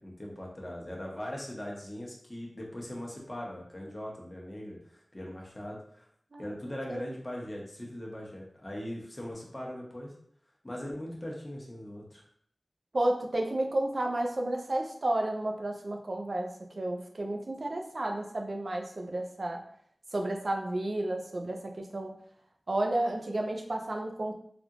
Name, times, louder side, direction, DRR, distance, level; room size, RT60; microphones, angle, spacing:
voice 1, 0.0-6.1 6.4-10.1 10.6-12.2, left 1 dB, 25° left, -2 dB, 0.9 m, -40 dB
voice 2, 12.9-19.6 20.1-22.1 22.7-24.3, right 1 dB, 60° right, 2 dB, 0.5 m, -32 dB
3.4 x 2.4 x 2.9 m, 0.64 s
wide cardioid pair, 75°, 0 cm